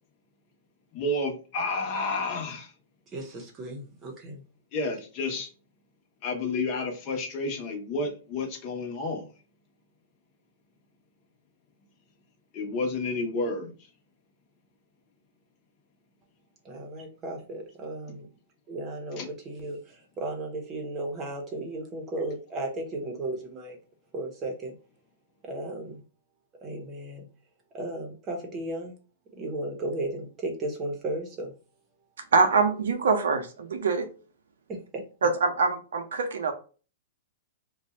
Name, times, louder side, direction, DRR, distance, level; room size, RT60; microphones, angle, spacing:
voice 1, 0.9-2.7 4.7-5.5 6.2-9.3 12.5-13.7 18.1-18.2 19.1-19.3, left 2 dB, 35° left, 1.0 m, -30 dB
voice 2, 3.1-4.4 16.6-18.3 18.7-23.8 24.1-24.7 25.4-26.0 26.6-27.3 27.7-28.9 29.4-31.5 34.9-35.0, right 2 dB, 25° right, 0.9 m, -35 dB
voice 3, 32.3-34.1 35.2-36.5, right 4 dB, 85° right, 0.8 m, -24 dB
2.6 x 2.3 x 4.1 m
hypercardioid pair, 145°, 0 cm